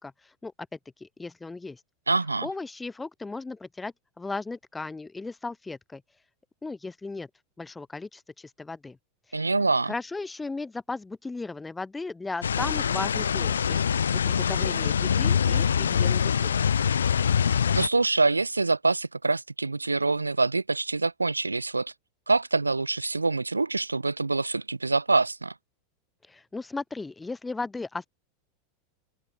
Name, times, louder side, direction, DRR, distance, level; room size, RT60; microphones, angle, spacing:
voice 1, 0.0-1.8 2.4-6.0 6.6-7.3 7.6-9.0 9.3-9.4 9.9-13.8 14.1-16.5 26.3-28.1, left 3 dB, 10° left, 1.9 m, -36 dB
voice 2, 2.1-2.5 9.3-9.9 17.4-21.9 22.3-25.5, right 3 dB, 85° right, 0.3 m, -25 dB
sound 1, 12.4-17.9, left 7 dB, 70° left, 0.8 m, -24 dB
open air
figure-of-eight pair, 85°, 0 cm